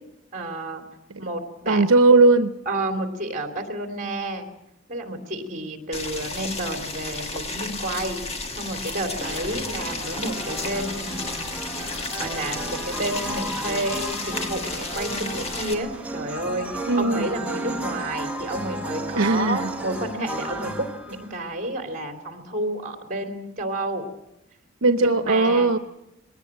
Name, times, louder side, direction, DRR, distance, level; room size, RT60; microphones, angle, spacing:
voice 1, 0.3-0.8 1.2-1.8 2.6-4.5 4.9-11.1 12.2-24.0 25.2-25.8, right 1 dB, 40° right, 3.0 m, -30 dB
voice 2, 1.7-2.5 16.9-17.3 19.2-19.7 24.8-25.8, right 3 dB, 85° right, 0.8 m, -18 dB
Boiling, 5.9-15.7, left 3 dB, 30° left, 1.7 m, -33 dB
sound 1, 9.2-21.5, right 1 dB, 5° right, 1.5 m, -33 dB
20.5 x 17.5 x 8.8 m
head